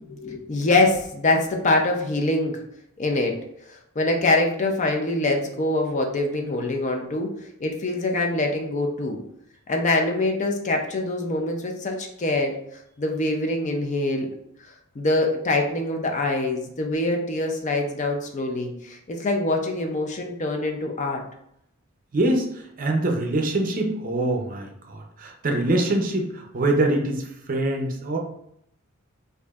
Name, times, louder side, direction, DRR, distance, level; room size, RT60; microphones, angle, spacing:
voice 1, 0.1-2.6 3.0-7.3 7.6-9.2 9.7-14.3 14.6-21.2, left 2 dB, 35° left, 3 dB, 0.4 m, -24 dB
voice 2, 22.1-28.2, right 1 dB, 40° right, 1 dB, 0.5 m, -24 dB
4.7 x 2.5 x 2.3 m, 0.74 s
head